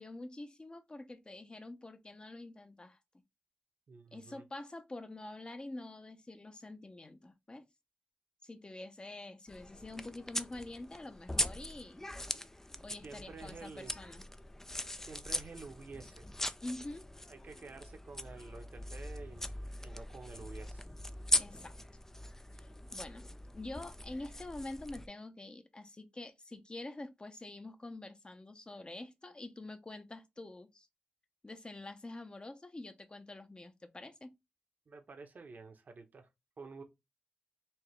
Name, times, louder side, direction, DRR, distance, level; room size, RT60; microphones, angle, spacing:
voice 1, 0.0-3.0 4.1-7.7 8.4-12.1 12.8-14.3 16.6-17.1 21.4-21.7 22.5-23.2 23.5-30.9 31.4-34.3, left 2 dB, 30° left, 0.8 m, -46 dB
voice 2, 3.9-4.4 13.0-13.9 15.1-16.3 17.3-20.9 34.9-36.3 36.6-36.8, right 4 dB, 65° right, 1.0 m, -50 dB
sound 1, 9.5-25.1, left 1 dB, 15° left, 0.4 m, -40 dB
4.4 x 2.9 x 3.2 m
cardioid pair, 65°, 3 cm